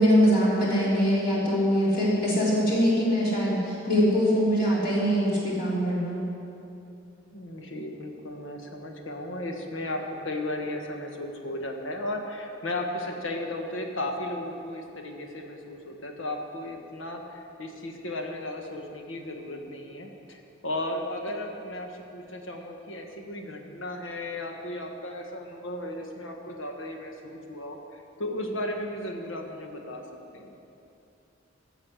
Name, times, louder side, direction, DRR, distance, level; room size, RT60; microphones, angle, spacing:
voice 1, 0.0-6.2, equal, 50° left, -7 dB, 3.2 m, -23 dB
voice 2, 7.3-30.0 30.3-30.5, left 1 dB, 80° left, 3 dB, 1.5 m, -35 dB
15.5 x 7.3 x 6.4 m, 2.8 s
head